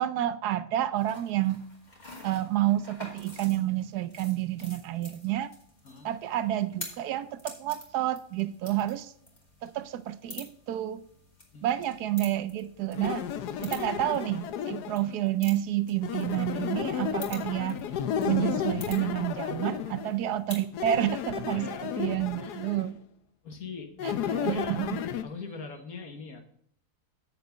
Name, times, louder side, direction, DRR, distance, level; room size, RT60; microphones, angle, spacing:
voice 1, 0.0-1.6 2.2-5.5 6.0-9.1 9.6-11.0 11.6-13.2 13.6-17.8 18.2-23.0 24.4-25.0, right 13 dB, 80° right, 1.2 m, -29 dB
sound 1, 1.0-20.7, left 2 dB, 25° left, 2.2 m, -49 dB
sound 2, 12.9-15.1 16.0-20.2 20.7-22.9 24.0-25.2, left 8 dB, 80° left, 1.3 m, -33 dB
voice 2, 21.5-22.7 23.4-24.8 25.2-26.4, left 4 dB, 65° left, 1.7 m, -43 dB
8.1 x 6.8 x 5.0 m
omnidirectional pair, 1.7 m